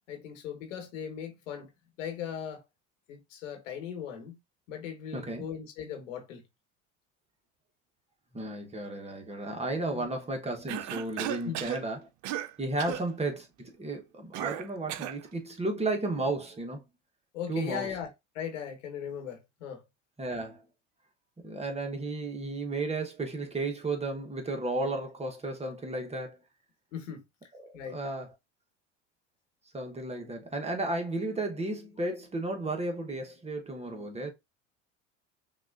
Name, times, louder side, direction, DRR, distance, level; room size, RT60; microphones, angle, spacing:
voice 1, 0.1-1.7 2.0-2.6 3.1-4.4 4.7-6.5 9.8-10.1 11.4-11.7 12.8-13.0 17.3-18.1 18.3-19.8 26.9-27.2 27.7-28.0, left 8 dB, 80° left, 1.3 m, -38 dB
voice 2, 5.1-5.4 8.3-12.1 12.6-16.8 17.5-17.9 20.2-20.6 21.4-26.4 27.6-28.3 29.7-34.3, right 2 dB, 15° right, 1.0 m, -33 dB
Cough, 10.7-11.8 12.2-12.5 12.8-13.1 14.3-15.2, right 12 dB, 50° right, 0.6 m, -35 dB
5.9 x 2.4 x 2.5 m
hypercardioid pair, 85°, 37 cm